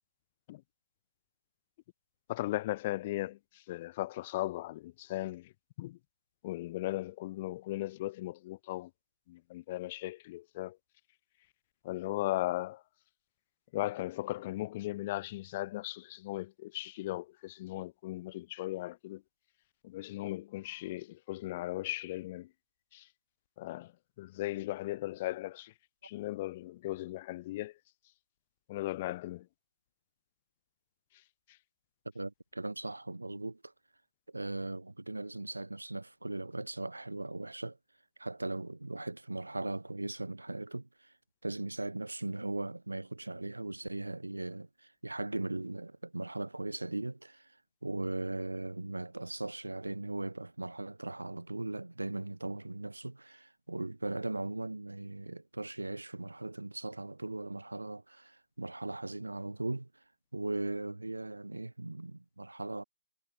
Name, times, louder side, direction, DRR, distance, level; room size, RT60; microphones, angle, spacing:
voice 1, 2.3-5.5 5.8-6.0 6.4-8.9 9.3-10.8 11.8-12.8 13.7-19.2 19.8-22.5 22.9-23.1 23.6-23.9 24.2-25.7 26.0-27.8 28.7-29.5, left 17 dB, 30° left, 6.6 m, -37 dB
voice 2, 32.1-33.7 34.3-37.8 38.2-41.1 41.4-59.9 60.3-62.8, right 2 dB, 80° right, 6.3 m, -38 dB
figure-of-eight pair, 140°, 0 cm